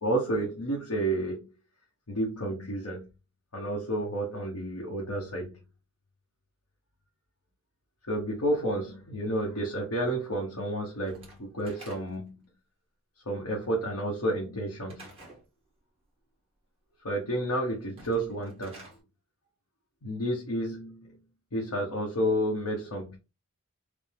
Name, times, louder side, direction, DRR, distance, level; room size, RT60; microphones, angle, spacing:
voice 1, 0.0-1.5 2.1-3.1 3.5-5.6 8.1-12.3 13.2-15.1 17.0-18.8 20.0-21.2 21.5-23.2, right 1 dB, 90° left, 1.0 m, -31 dB
Slam / Wood, 11.1-12.4 14.9-15.4 17.8-19.0, right 2 dB, 25° right, 1.6 m, -50 dB
5.1 x 2.1 x 3.3 m
head